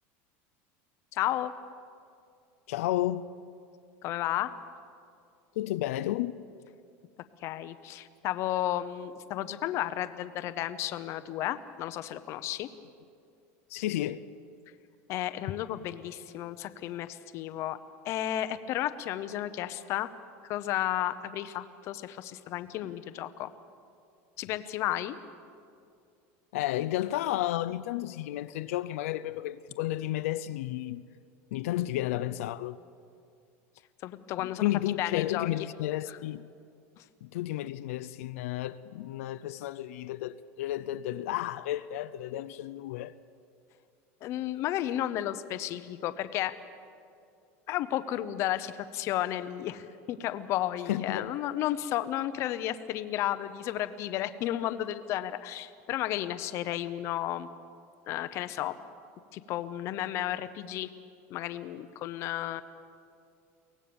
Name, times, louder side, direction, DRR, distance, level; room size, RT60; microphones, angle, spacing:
voice 1, 1.1-1.5 4.0-4.5 7.4-12.7 15.1-17.8 18.0-20.1 20.5-23.5 24.4-25.2 34.0-34.7 35.0-35.5 36.1-36.2 37.0-37.1 44.2-46.5 47.7-57.5 58.1-58.8 59.3-60.9 61.3-62.6, left 13 dB, 40° left, 0.8 m, -33 dB
voice 2, 2.7-3.3 5.6-6.3 13.7-14.2 26.5-31.0 31.5-32.8 34.4-36.5 37.2-43.1 50.9-51.3, left 14 dB, 85° left, 0.6 m, -32 dB
23.5 x 18.0 x 7.1 m
supercardioid pair, 165°, 7 cm